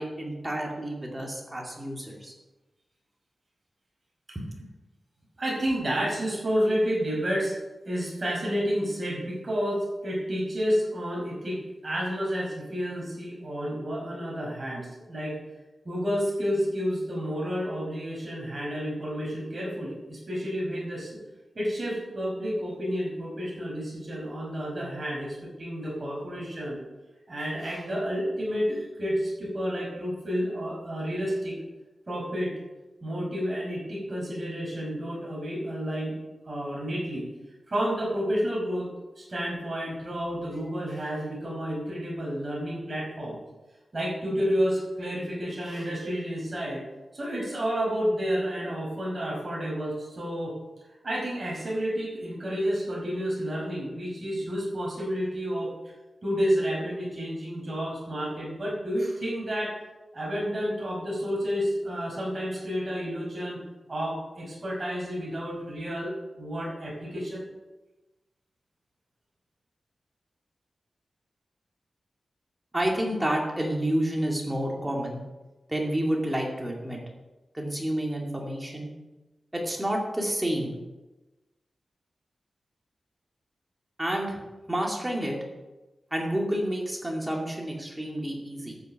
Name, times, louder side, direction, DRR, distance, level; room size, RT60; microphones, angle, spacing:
voice 1, 0.0-2.3 4.3-4.5 72.7-75.2 75.7-77.0 77.5-78.9 79.5-80.7 84.0-84.4 84.7-85.4 86.1-88.8, right 1 dB, 10° right, -1 dB, 2.4 m, -29 dB
voice 2, 5.4-7.5 7.8-15.4 15.8-21.1 21.5-26.8 27.3-31.6 32.1-32.6 33.0-36.2 36.4-37.3 37.7-38.9 39.2-43.4 43.9-46.8 47.1-50.6 51.0-55.7 56.2-59.7 60.1-63.6 63.9-66.1 66.4-67.4, equal, 35° right, -4 dB, 4.9 m, -30 dB
14.0 x 6.8 x 5.8 m, 1.1 s
wide cardioid pair, 160°, 0 cm